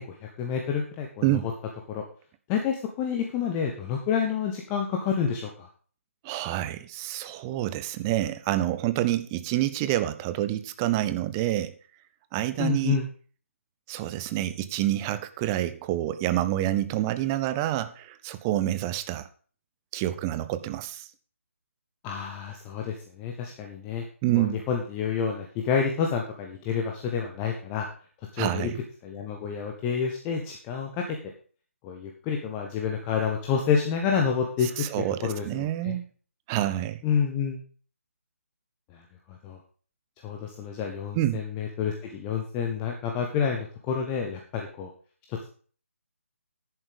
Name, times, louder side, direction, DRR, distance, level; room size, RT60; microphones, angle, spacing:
voice 1, 0.0-1.4 1.9-2.0 2.5-5.7 12.6-13.1 22.0-24.0 24.4-27.9 28.3-28.7 29.0-31.0 31.8-34.9 35.2-36.0 37.0-37.6 38.9-39.0 39.3-39.6 40.2-44.9 45.3-45.5, left 7 dB, 15° left, 2 dB, 1.0 m, -29 dB
voice 2, 6.2-11.7 12.3-13.0 13.9-19.3 19.9-21.1 24.2-24.6 28.4-28.8 34.8-36.1 36.5-37.0 41.1-41.4, right 14 dB, 15° right, 13 dB, 0.5 m, -27 dB
10.5 x 8.6 x 5.1 m, 0.42 s
figure-of-eight pair, 150°, 8 cm